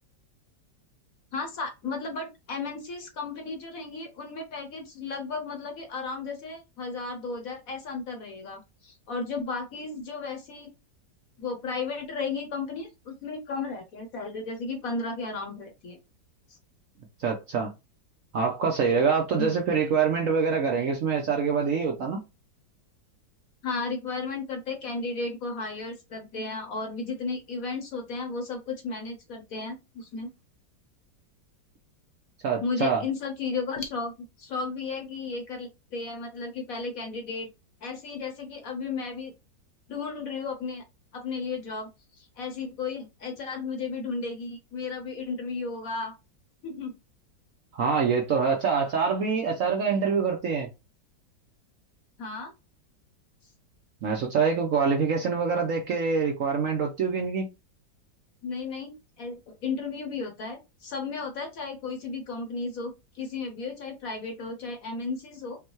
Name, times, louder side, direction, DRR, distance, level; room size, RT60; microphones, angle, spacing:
voice 1, 1.3-10.7 11.4-16.0 19.4-19.6 23.6-30.3 32.6-37.5 37.8-39.3 39.9-40.8 41.1-41.9 42.2-46.1 46.6-46.9 52.2-52.5 58.4-65.6, left 4 dB, 60° left, 1.1 m, -34 dB
voice 2, 17.2-17.7 18.3-22.2 32.4-33.0 47.7-50.7 54.0-57.5, right 5 dB, 60° right, 0.9 m, -25 dB
5.3 x 2.3 x 3.1 m
omnidirectional pair, 2.0 m